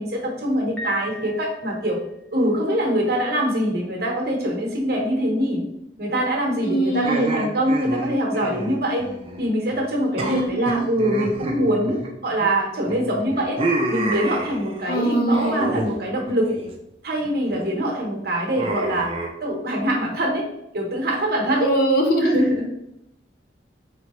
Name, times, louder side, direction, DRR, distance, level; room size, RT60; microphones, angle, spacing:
voice 1, 0.0-2.0 2.3-5.6 6.0-9.1 9.4-13.6 13.9-16.5 17.0-19.1 19.4-20.4 20.7-21.7 22.2-22.7, equal, 55° right, 0 dB, 0.9 m, -23 dB
Piano, 0.8-2.2, left 3 dB, 5° left, 0.7 m, -38 dB
voice 2, 6.6-7.3 10.2-10.8 14.9-15.7 21.6-22.4, right 1 dB, 55° left, 2 dB, 0.7 m, -22 dB
sound 1, 7.0-9.5 9.7-9.9 10.2-12.5 12.9-14.9 15.3-15.9 16.2-16.7 17.2-17.6 18.6-19.3, right 2 dB, 30° right, 0.5 m, -29 dB
3.9 x 3.2 x 3.0 m, 0.80 s
head